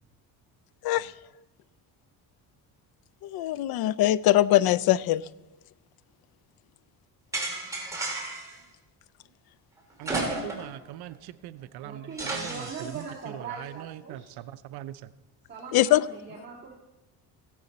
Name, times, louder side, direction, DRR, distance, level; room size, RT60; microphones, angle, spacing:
voice 1, 3.2-5.2 15.7-16.0, left 14 dB, 70° left, 20 dB, 0.5 m, -22 dB
sound 1, 7.3-8.5 10.0-10.8 11.1-11.2 12.2-13.0, right 2 dB, 10° right, 2.7 m, -32 dB
voice 2, 10.0-15.0, right 13 dB, 75° right, 14 dB, 0.5 m, -41 dB
voice 3, 11.6-14.3 15.5-16.7, right 5 dB, 30° right, -4 dB, 1.8 m, -41 dB
15.5 x 10.5 x 4.1 m, 1.0 s
cardioid pair, 125°, 38 cm